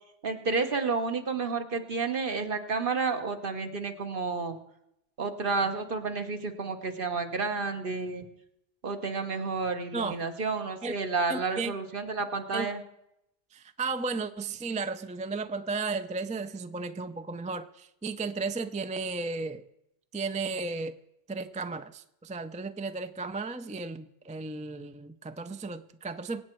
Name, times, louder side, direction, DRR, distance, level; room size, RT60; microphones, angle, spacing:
voice 1, 0.2-4.6 5.2-8.3 8.8-12.8, right 4 dB, 60° right, 6 dB, 1.4 m, -31 dB
voice 2, 11.3-11.7 12.5-12.7 13.5-19.6 20.1-20.9 21.3-26.4, right 4 dB, 10° right, 10 dB, 0.4 m, -34 dB
24.0 x 8.8 x 4.6 m, 0.82 s
omnidirectional pair, 1.0 m